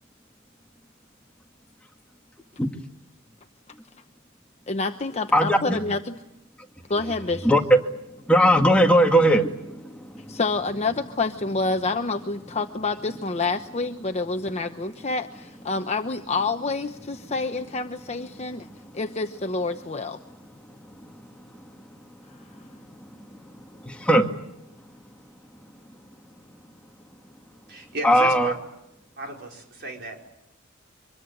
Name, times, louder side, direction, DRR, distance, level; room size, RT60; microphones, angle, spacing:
voice 1, 4.7-6.2 6.9-7.5 10.3-18.7 18.9-20.2, left 3 dB, 30° left, 6 dB, 0.9 m, -28 dB
voice 2, 5.3-5.8 7.4-7.8 8.3-9.5 23.8-24.2 28.0-28.5, equal, 5° left, 3 dB, 1.9 m, -18 dB
voice 3, 27.7-28.5 29.2-30.3, right 2 dB, 55° right, 2 dB, 4.8 m, -34 dB
25.0 x 22.0 x 9.7 m, 0.86 s
head